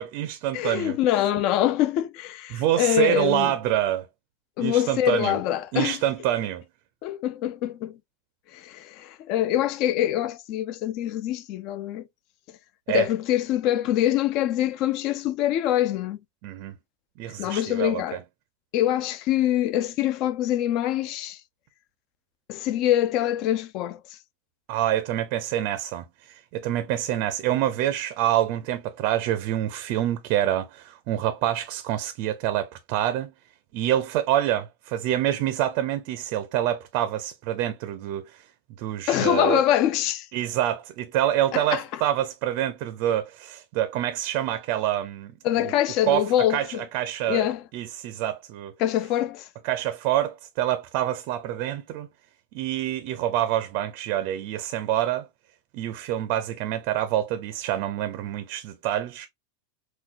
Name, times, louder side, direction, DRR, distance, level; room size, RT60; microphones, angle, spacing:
voice 1, 0.0-1.0 2.5-4.1 4.6-5.4 5.7-6.6 12.9-13.1 16.4-16.7 17.2-18.2 24.7-33.3 33.7-38.4 38.8-39.6 40.3-45.3 45.6-45.7 46.1-47.5 47.7-48.7 49.6-52.1 52.5-55.3 55.7-59.3, right 12 dB, 45° right, 0.5 m, -26 dB
voice 2, 0.5-3.5 4.6-6.0 7.0-8.0 8.5-12.0 12.9-16.2 17.4-18.2 18.7-21.4 22.5-24.0 39.1-40.3 41.5-41.8 45.4-46.9 47.2-47.6 48.8-49.5, left 12 dB, 40° left, 0.4 m, -24 dB
6.0 x 2.2 x 2.4 m
supercardioid pair, 165°, 0 cm